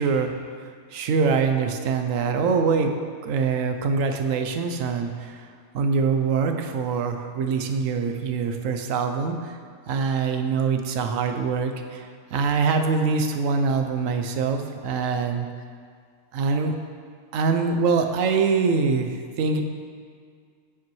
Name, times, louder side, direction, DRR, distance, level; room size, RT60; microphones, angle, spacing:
voice 1, 0.0-2.9 3.2-9.6 9.9-15.5 16.3-16.7 17.3-19.6, right 5 dB, 85° right, 5 dB, 1.0 m, -24 dB
8.3 x 7.3 x 3.1 m, 2.1 s
omnidirectional pair, 1.3 m